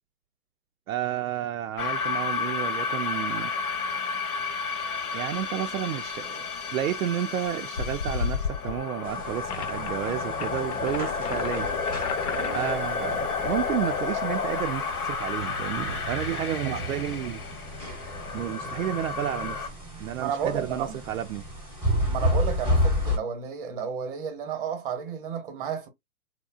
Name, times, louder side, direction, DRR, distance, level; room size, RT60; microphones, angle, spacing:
voice 1, 0.9-3.5 5.1-6.4 6.7-11.7 12.5-17.4 18.3-19.7 20.0-21.4, right 11 dB, 70° right, 0.5 m, -31 dB
sound 1, 1.8-19.7, left 5 dB, 80° left, 0.9 m, -31 dB
sound 2, 9.0-23.2, equal, 5° right, 0.3 m, -32 dB
sound 3, 9.5-9.9 10.3-12.8, left 7 dB, 55° left, 0.5 m, -38 dB
voice 2, 12.3-12.7 16.6-16.8 20.2-21.0 22.1-25.9, right 7 dB, 40° right, 0.7 m, -32 dB
2.7 x 2.1 x 2.3 m
hypercardioid pair, 150°, 43 cm